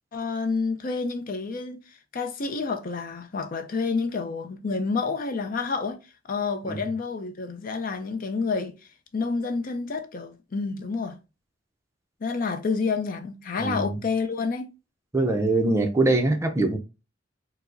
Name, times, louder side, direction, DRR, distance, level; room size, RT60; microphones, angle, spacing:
voice 1, 0.1-6.0 6.3-8.8 9.1-11.2 12.2-14.7, left 4 dB, 50° left, 0.5 m, -29 dB
voice 2, 13.6-14.0 15.1-16.8, right 2 dB, 15° right, 0.4 m, -23 dB
4.6 x 2.0 x 2.5 m
head